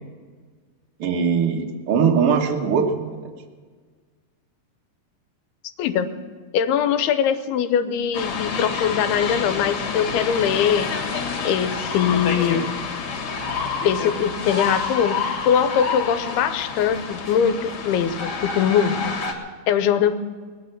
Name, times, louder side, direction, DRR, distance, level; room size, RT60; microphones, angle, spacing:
voice 1, 1.0-3.3, right 6 dB, 75° right, 1 dB, 1.3 m, -21 dB
voice 2, 5.8-6.1 6.5-10.9 11.4-12.7 13.8-19.1 19.7-20.2, left 8 dB, 85° left, 10 dB, 2.7 m, -22 dB
sound 1, 8.1-19.3, left 5 dB, 55° left, 2.5 m, -28 dB
19.5 x 9.2 x 7.8 m, 1.5 s
omnidirectional pair, 4.5 m